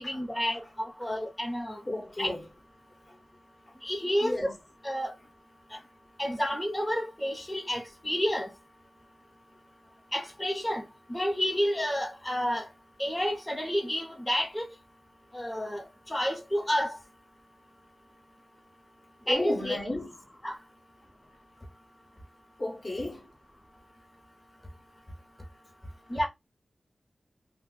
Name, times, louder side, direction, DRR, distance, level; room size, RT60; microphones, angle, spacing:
voice 1, 0.0-1.8 2.2-2.3 3.8-4.5 4.8-5.1 6.2-8.5 10.1-12.7 13.0-14.7 15.3-17.0 19.3-19.8 20.4-20.5 26.1-26.3, equal, 15° left, 0.9 m, -30 dB
voice 2, 1.9-2.5 3.1-3.2 4.2-4.5 5.8-5.9 19.2-20.2 22.6-23.3, left 1 dB, 40° left, 1.2 m, -33 dB
2.5 x 2.3 x 3.7 m
wide cardioid pair, 90°, 0 cm